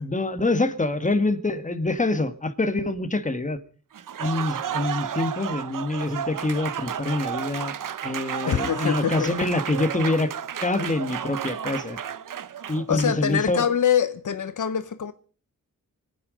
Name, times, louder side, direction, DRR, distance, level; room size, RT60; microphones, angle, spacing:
voice 1, 0.0-3.6 4.2-7.7 8.0-10.3 10.6-12.0 12.7-13.6, left 2 dB, 25° left, 1.6 m, -25 dB
Applause, 3.9-13.3, right 9 dB, 85° right, 0.8 m, -32 dB
voice 2, 8.5-9.3 12.9-15.1, left 8 dB, 70° left, 0.9 m, -24 dB
25.5 x 9.4 x 5.1 m
wide cardioid pair, 80°, 32 cm